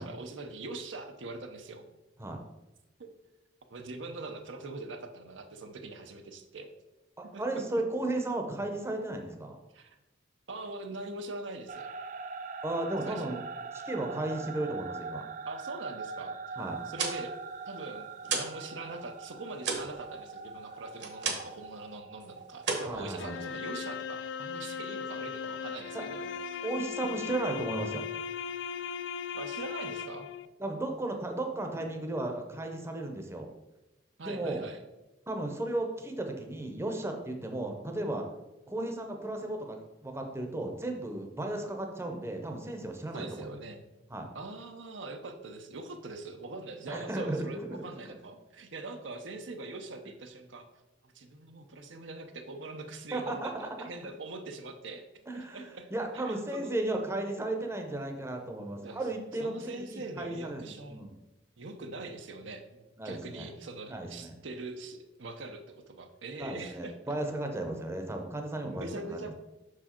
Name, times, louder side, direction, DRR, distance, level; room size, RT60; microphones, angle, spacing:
voice 1, 0.0-1.8 3.0-3.1 3.7-6.7 7.3-7.4 9.7-10.0 10.5-11.9 13.1-13.4 15.5-16.3 16.9-17.3 17.7-26.6 27.0-27.1 29.3-30.3 34.2-34.8 43.1-43.8 44.3-50.7 51.0-55.1 55.3-56.7 58.8-59.0 59.4-61.0 61.6-67.1 68.7-69.3, right 2 dB, 85° right, 5 dB, 0.7 m, -43 dB
voice 2, 7.2-9.6 12.6-13.4 13.8-15.2 16.6-16.8 22.8-23.4 25.9-26.1 26.6-28.1 30.6-33.5 34.2-34.6 35.3-38.3 38.7-43.5 44.1-44.3 46.9-47.8 53.1-53.9 55.3-61.2 63.0-63.5 63.9-64.4 66.4-69.2, right 2 dB, 15° right, 3 dB, 0.7 m, -35 dB
sound 1, 11.7-23.5, right 4 dB, 40° right, 0.4 m, -42 dB
sound 2, 16.7-18.6 18.9-21.7 22.0-22.3 22.6-23.7, right 5 dB, 65° right, 1.1 m, -35 dB
sound 3, 23.2-30.5, left 6 dB, 70° left, 0.3 m, -38 dB
6.0 x 4.8 x 4.3 m, 0.99 s
head